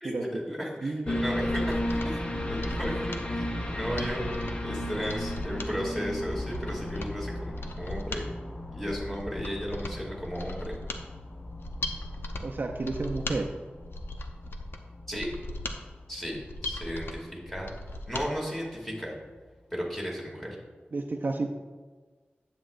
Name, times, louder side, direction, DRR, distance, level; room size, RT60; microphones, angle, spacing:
voice 1, 0.0-4.2 4.6-8.3 8.7-10.7 15.1-15.3 16.1-17.7 18.1-19.1 19.7-20.6, equal, 10° left, -3 dB, 2.4 m, -35 dB
voice 2, 0.8-1.2 12.4-13.5 20.9-21.5, right 3 dB, 60° right, 3 dB, 0.6 m, -31 dB
sound 1, 1.0-18.8 19.2-19.3, left 1 dB, 30° left, 0.9 m, -36 dB
Mechanisms, 1.4-18.3 18.6-18.7, left 1 dB, 85° left, 0.7 m, -39 dB
9.9 x 8.0 x 2.5 m, 1.4 s
wide cardioid pair, 80°, 4 cm